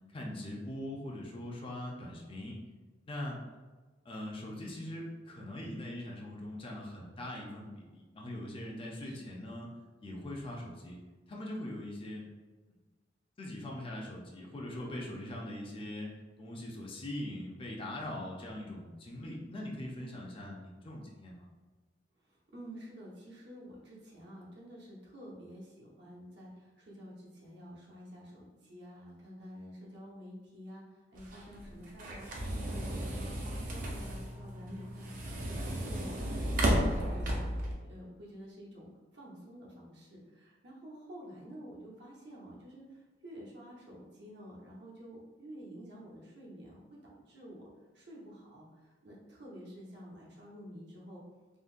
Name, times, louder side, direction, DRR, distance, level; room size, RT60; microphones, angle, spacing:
voice 1, 0.1-2.6 3.0-3.4 4.1-9.7 10.0-11.0 11.3-12.3 12.7-12.8 13.4-21.5, left 1 dB, 30° left, -2 dB, 0.4 m, -41 dB
voice 2, 22.5-30.8 31.1-32.3 32.6-37.4 37.9-38.9 39.1-42.9 43.2-47.6 47.9-48.7 49.0-51.2, equal, 65° right, -4 dB, 0.9 m, -49 dB
sound 1, 31.1-37.7, right 1 dB, 50° right, 0.5 m, -34 dB
3.7 x 2.1 x 2.5 m, 1.3 s
head